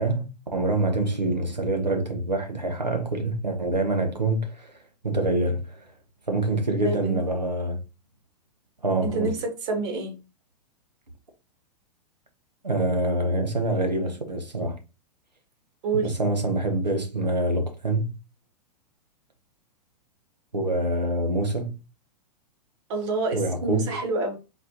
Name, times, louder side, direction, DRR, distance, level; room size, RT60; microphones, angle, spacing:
voice 1, 0.0-4.8 5.0-5.9 6.3-7.8 8.8-9.4 12.6-14.8 15.9-18.1 20.5-21.8 23.3-23.9, right 2 dB, 90° right, 0.9 m, -26 dB
voice 2, 6.8-7.2 9.0-10.2 15.8-16.1 22.9-24.4, right 3 dB, 40° right, 1.2 m, -28 dB
4.2 x 2.5 x 2.8 m
figure-of-eight pair, 105°, 21 cm